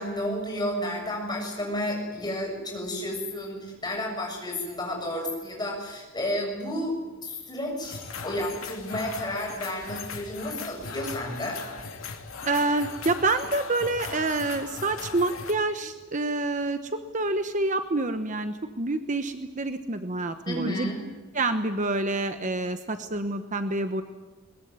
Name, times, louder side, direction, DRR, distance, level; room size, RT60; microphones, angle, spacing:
voice 1, 0.0-11.6 20.5-21.0, left 1 dB, 20° left, 1 dB, 7.2 m, -31 dB
sound 1, 7.8-15.5, left 4 dB, 80° left, 2.6 m, -38 dB
voice 2, 12.5-20.9 21.3-24.0, right 2 dB, 35° right, 9 dB, 1.1 m, -27 dB
22.0 x 21.0 x 9.6 m, 1.2 s
head